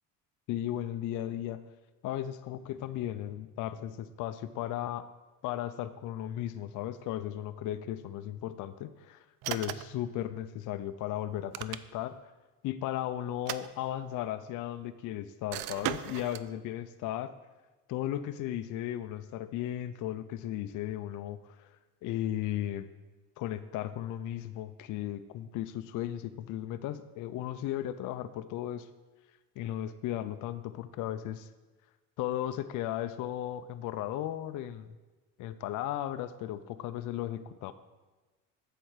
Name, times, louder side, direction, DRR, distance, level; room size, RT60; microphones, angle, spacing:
voice 1, 0.5-1.6 2.0-5.1 5.4-12.2 12.6-17.3 17.9-21.7 22.0-22.9 23.4-28.9 29.6-31.5 32.2-34.9 35.4-37.7, left 12 dB, 55° left, 10 dB, 0.5 m, -36 dB
sound 1, 9.4-10.0 11.3-12.2 13.3-14.3 15.5-16.5, right 13 dB, 70° right, 0.5 m, -38 dB
7.7 x 4.4 x 6.5 m, 1.2 s
cardioid pair, 115°, 38 cm